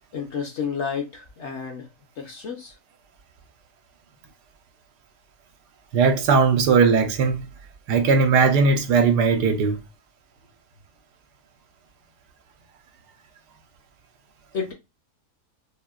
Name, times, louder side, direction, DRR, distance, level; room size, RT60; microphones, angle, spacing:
voice 1, 0.1-1.9 2.2-2.7 14.5-14.7, left 6 dB, 55° left, 0.9 m, -30 dB
voice 2, 5.9-7.5 7.9-9.8, right 5 dB, 85° right, 1.4 m, -18 dB
5.6 x 2.1 x 2.4 m
omnidirectional pair, 1.7 m